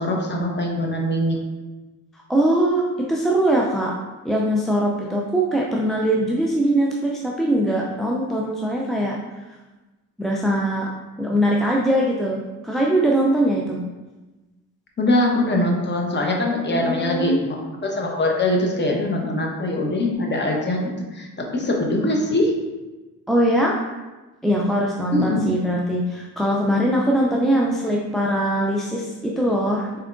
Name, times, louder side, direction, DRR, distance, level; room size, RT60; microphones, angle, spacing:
voice 1, 0.0-1.4 15.0-20.8 21.1-22.5 25.1-25.4, left 1 dB, 25° left, 0 dB, 1.0 m, -22 dB
voice 2, 2.3-3.9 4.2-9.2 10.2-10.9 11.2-13.8 16.7-17.4 23.3-23.8 24.4-30.0, right 1 dB, ahead, -3 dB, 0.4 m, -21 dB
4.4 x 3.5 x 2.5 m, 1.1 s
supercardioid pair, 75°, 41 cm